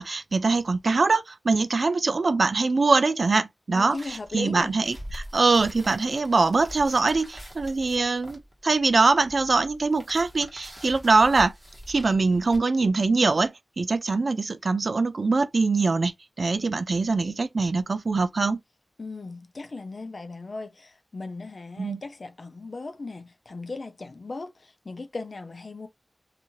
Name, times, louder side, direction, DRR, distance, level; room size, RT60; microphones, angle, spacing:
voice 1, 0.0-11.5 11.9-16.1 16.4-18.6 21.8-22.0, right 3 dB, 70° right, 0.3 m, -23 dB
voice 2, 3.7-4.8 19.0-25.9, left 3 dB, 65° left, 0.6 m, -37 dB
sound 1, 3.9-12.6, equal, 20° right, 1.2 m, -44 dB
2.7 x 2.4 x 2.9 m
wide cardioid pair, 65°, 0 cm